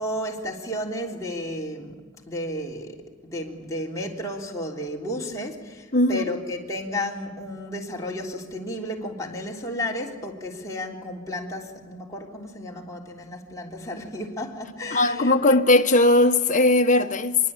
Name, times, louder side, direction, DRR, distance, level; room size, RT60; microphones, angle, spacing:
voice 1, 0.0-2.0 2.3-15.6, left 1 dB, 15° left, 3.5 m, -33 dB
voice 2, 5.9-6.3 14.9-17.4, left 2 dB, 35° left, 1.4 m, -19 dB
25.5 x 23.0 x 8.8 m
head